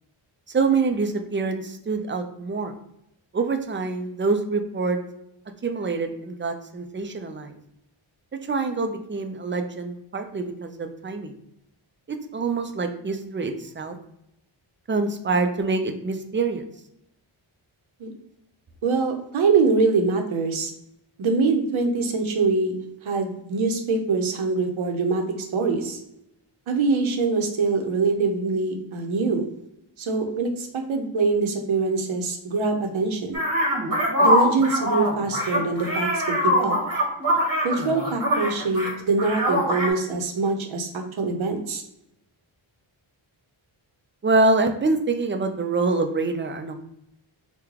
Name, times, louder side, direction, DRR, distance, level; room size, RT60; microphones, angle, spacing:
voice 1, 0.5-2.7 3.3-5.0 5.6-7.5 8.5-11.3 12.1-14.0 14.9-16.6 44.2-46.7, right 3 dB, 25° right, 6 dB, 0.4 m, -25 dB
voice 2, 18.8-20.7 21.2-22.7 23.0-26.0 26.7-29.4 30.0-33.4 34.2-36.8 37.6-41.8, right 4 dB, 70° right, 4 dB, 0.7 m, -24 dB
sound 1, 33.3-38.9 39.2-39.9, equal, 40° right, 1.1 m, -23 dB
3.0 x 2.2 x 3.6 m, 0.80 s
cardioid pair, 60°, 49 cm